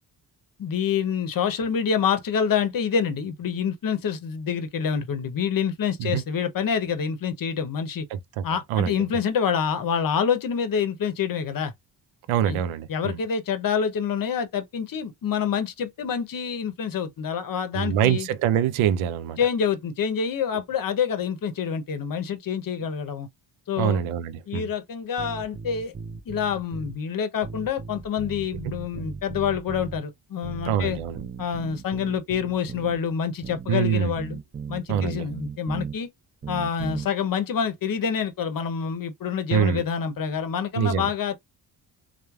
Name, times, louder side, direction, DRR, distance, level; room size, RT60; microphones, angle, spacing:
voice 1, 0.6-8.1 8.4-11.7 12.5-12.6 12.9-18.3 19.4-23.3 23.7-24.0 24.5-25.9 26.3-31.0 31.4-34.4 34.7-36.1 36.5-41.4, left 7 dB, 45° left, 0.7 m, -27 dB
voice 2, 8.1-8.4 8.7-8.9 12.3-13.2 17.7-19.4 23.8-24.7 30.6-31.3 33.7-34.1 34.9-35.3 39.5-39.9 40.8-41.1, right 9 dB, 70° right, 0.5 m, -24 dB
sound 1, 25.2-27.0 27.4-30.0 30.4-33.0 33.4-36.0 36.4-37.1, right 5 dB, 20° right, 0.5 m, -37 dB
3.1 x 2.0 x 2.3 m
supercardioid pair, 60°, 49 cm